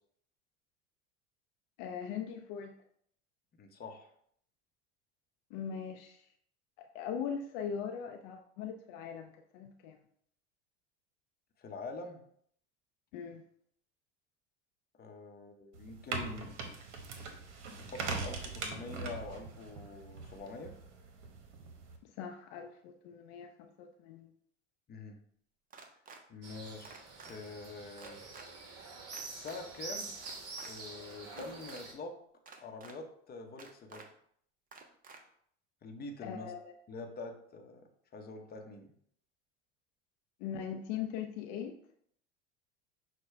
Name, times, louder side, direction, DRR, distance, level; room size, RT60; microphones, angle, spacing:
voice 1, 1.8-2.7 5.5-6.2 6.8-10.0 13.1-13.4 22.0-24.3 36.2-36.7 40.4-41.8, left 7 dB, 65° left, 5 dB, 0.5 m, -40 dB
voice 2, 3.6-4.1 11.6-12.2 15.0-16.6 17.8-20.8 24.9-25.2 26.3-26.9 27.3-28.3 29.4-30.2 30.6-32.2 32.6-34.1 35.8-36.5 36.9-37.8 38.1-38.9, left 3 dB, 25° left, 4 dB, 0.7 m, -45 dB
sound 1, 15.7-22.0, right 4 dB, 80° right, 0.8 m, -41 dB
sound 2, 25.7-26.2 26.8-27.3 28.0-28.5 29.1-29.6 30.2-30.7 31.3-31.8 32.5-32.9 33.6-34.1 34.7-35.2, right 4 dB, 25° right, 0.6 m, -51 dB
sound 3, 26.4-31.9, right 3 dB, 40° right, 1.2 m, -46 dB
6.2 x 2.2 x 3.3 m, 0.66 s
hypercardioid pair, 85°, 36 cm